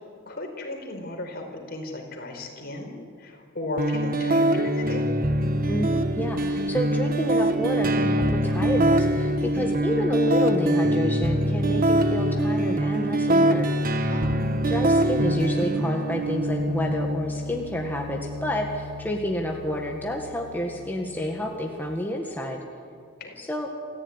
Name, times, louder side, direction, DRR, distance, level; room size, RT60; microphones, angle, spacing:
voice 1, 0.3-2.9 3.2-5.0 14.1-14.4 23.2-23.3, left 2 dB, 55° left, 2 dB, 4.8 m, -34 dB
sound 1, 3.8-21.7, right 1 dB, 45° right, 1.2 m, -24 dB
voice 2, 5.7-14.1 14.5-22.6 23.4-23.7, equal, 10° left, 0 dB, 1.8 m, -29 dB
28.0 x 14.5 x 9.9 m, 2.3 s
head